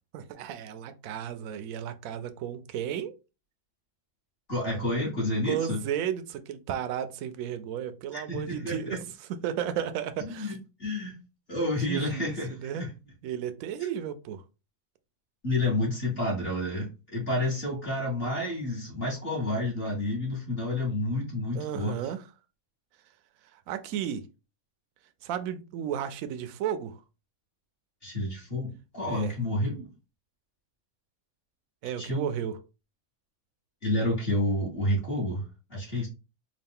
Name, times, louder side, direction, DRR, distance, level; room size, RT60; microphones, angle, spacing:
voice 1, 0.1-3.1 5.4-9.0 9.3-10.6 11.6-12.3 12.6-12.8 13.2-14.4 21.5-22.2 23.5-24.2 25.2-27.0 29.1-29.3 31.8-32.6, right 9 dB, 75° right, 0.9 m, -33 dB
voice 2, 4.5-5.8 8.1-8.8 10.3-10.5 10.8-11.2 11.5-12.9 15.4-21.9 28.0-29.9 32.0-32.3 33.8-35.4 35.7-36.1, left 1 dB, 45° left, 1.7 m, -29 dB
3.8 x 2.4 x 3.6 m
omnidirectional pair, 1.5 m